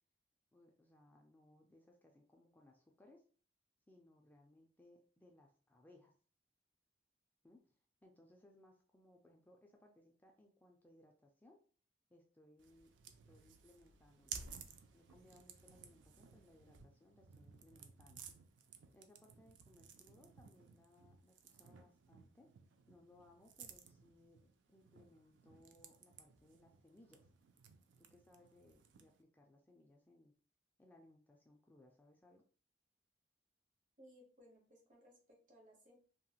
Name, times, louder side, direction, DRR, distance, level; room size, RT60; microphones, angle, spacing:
voice 1, 0.5-3.2 3.9-6.1 7.4-7.8 8.0-11.6 12.1-14.4 14.9-18.2 18.9-22.5 22.9-27.3 28.0-30.3 30.8-32.4, left 1 dB, 10° left, 2 dB, 0.3 m, -66 dB
sound 1, 12.6-29.2, right 6 dB, 80° right, 0.4 m, -57 dB
voice 2, 34.0-36.0, equal, 45° right, 0 dB, 1.0 m, -63 dB
2.9 x 2.8 x 2.3 m, 0.42 s
head